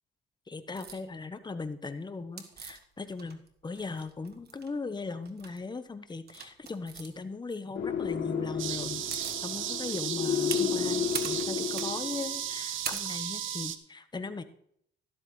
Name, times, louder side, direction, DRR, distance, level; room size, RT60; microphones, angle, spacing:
voice 1, 0.5-14.4, left 3 dB, 20° left, 10 dB, 1.0 m, -38 dB
sound 1, 0.8-1.0 2.4-3.5 3.8-4.7 5.2-5.6 6.3-7.1 8.6-8.7 8.9-9.4 9.9-13.6, right 6 dB, 55° right, 1.4 m, -41 dB
sound 2, 7.7-12.4, left 7 dB, 75° left, 1.6 m, -32 dB
sound 3, 8.6-13.8, right 11 dB, 80° right, 0.8 m, -35 dB
13.0 x 12.5 x 3.2 m, 0.67 s
cardioid pair, 90°, 20 cm